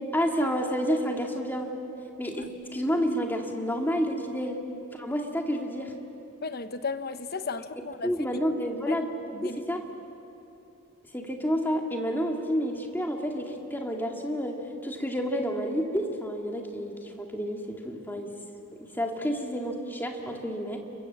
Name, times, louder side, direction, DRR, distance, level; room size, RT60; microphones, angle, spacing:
voice 1, 0.1-1.7 2.2-2.5 2.7-4.6 4.9-5.9 8.0-9.1 9.4-9.8 11.1-18.3 18.9-20.8, equal, 10° left, 2 dB, 2.1 m, -29 dB
voice 2, 6.4-8.1 8.9-9.0 9.3-9.6, left 4 dB, 45° left, 11 dB, 1.0 m, -34 dB
29.5 x 22.5 x 7.4 m, 2.9 s
head